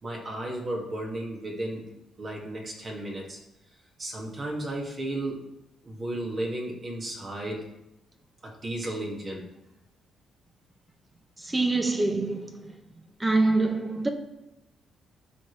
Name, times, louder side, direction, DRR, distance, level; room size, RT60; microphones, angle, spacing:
voice 1, 0.0-1.8 2.2-3.4 4.0-5.4 5.8-7.6 8.4-9.5, right 1 dB, 40° right, 2.4 m, -34 dB
voice 2, 11.4-12.7 13.2-14.1, right 2 dB, 20° right, 1.2 m, -25 dB
12.5 x 5.3 x 3.4 m
cardioid pair, 90°, 0 cm